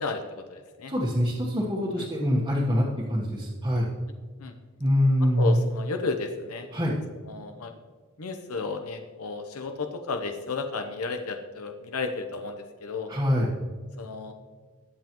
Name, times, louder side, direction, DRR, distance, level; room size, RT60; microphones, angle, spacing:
voice 1, 0.0-0.9 2.0-2.1 4.4-4.5 5.2-6.7 7.3-7.7 8.2-13.1 14.0-14.3, left 4 dB, 85° left, 6 dB, 0.8 m, -33 dB
voice 2, 0.9-3.9 4.8-5.6 6.7-6.9 13.1-13.5, equal, 20° right, -6 dB, 1.2 m, -24 dB
19.5 x 7.4 x 3.0 m, 1.5 s
head